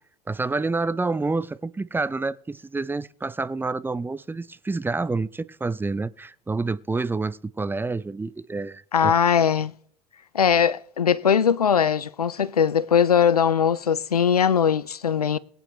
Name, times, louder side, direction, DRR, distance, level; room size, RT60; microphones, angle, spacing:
voice 1, 0.3-9.1, right 3 dB, 10° right, 0.5 m, -28 dB
voice 2, 8.9-9.7 10.3-15.4, left 7 dB, 85° left, 0.5 m, -20 dB
22.5 x 9.3 x 3.1 m
figure-of-eight pair, 65°, 19 cm